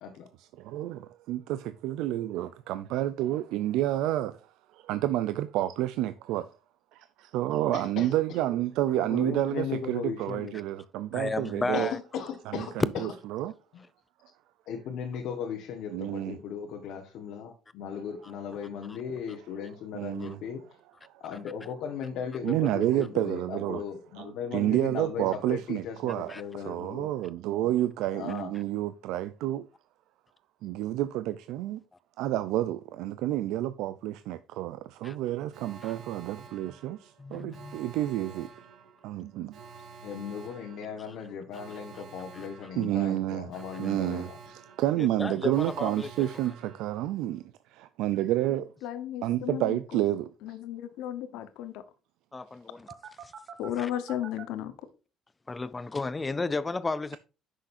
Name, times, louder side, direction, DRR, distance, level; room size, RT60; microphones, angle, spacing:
voice 1, 0.4-4.4 4.7-6.5 6.9-11.9 12.5-13.5 15.9-16.4 19.9-20.4 21.0-21.1 22.4-23.8 24.2-29.7 30.6-31.8 32.2-38.5 39.0-39.5 42.8-43.5 43.8-47.4 47.7-48.7 49.2-50.3, right 14 dB, 85° right, 0.4 m, -30 dB
voice 2, 7.7-8.4 8.9-10.5 11.7-12.8 14.7-20.6 21.2-27.1 28.1-28.5 40.0-44.4, left 7 dB, 70° left, 1.2 m, -37 dB
voice 3, 11.1-12.0 18.9-19.0 20.2-20.3 26.3-26.4 35.0-35.2 35.8-35.9 37.2-37.8 42.3-42.5 45.0-46.3 52.3-52.9 53.2-53.3 53.8-53.9 55.5-57.2, left 3 dB, 15° left, 0.4 m, -33 dB
Alarm, 35.5-47.4 52.9-54.4, right 6 dB, 50° right, 1.2 m, -49 dB
voice 4, 48.8-50.0 50.4-51.8 53.6-54.7, left 11 dB, 85° left, 1.0 m, -34 dB
9.7 x 6.4 x 2.6 m
cardioid pair, 145°, 0 cm